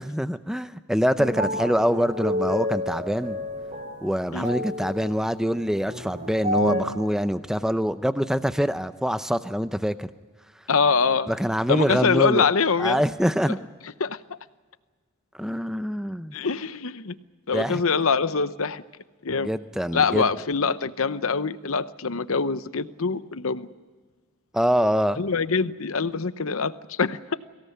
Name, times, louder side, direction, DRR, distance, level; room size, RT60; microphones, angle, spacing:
voice 1, 0.0-3.4 4.0-10.1 11.3-12.5 12.8-13.6 15.4-16.4 17.5-17.8 19.4-20.3 24.5-25.2, equal, ahead, 11 dB, 0.6 m, -25 dB
sound 1, 1.2-6.8, left 1 dB, 35° right, 5.2 m, -30 dB
voice 2, 10.7-11.3 11.7-13.0 14.0-14.4 16.3-17.1 17.5-18.8 19.2-19.5 19.9-23.7 25.2-27.4, left 5 dB, 70° left, 13 dB, 0.9 m, -24 dB
23.5 x 17.0 x 9.5 m, 1.5 s
head